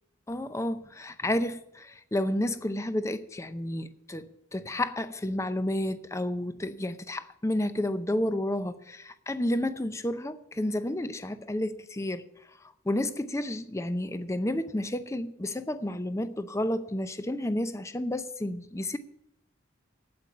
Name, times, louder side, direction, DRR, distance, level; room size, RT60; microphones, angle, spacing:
voice 1, 0.3-12.2 12.9-19.0, left 1 dB, 15° left, 0.5 m, -31 dB
8.8 x 8.4 x 8.4 m
head